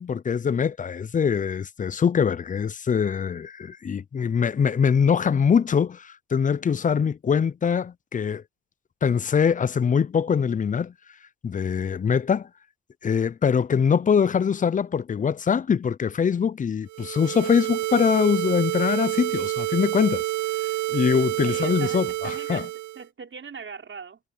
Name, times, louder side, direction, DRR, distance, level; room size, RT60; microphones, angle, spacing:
voice 1, 0.0-8.4 9.0-10.9 11.4-12.5 13.0-20.2 20.9-22.7, left 7 dB, 25° left, 0.5 m, -23 dB
sound 1, 16.9-23.0, right 17 dB, 70° right, 0.6 m, -28 dB
voice 2, 21.4-24.2, right 5 dB, 40° right, 4.7 m, -40 dB
cardioid pair, 90°, 30 cm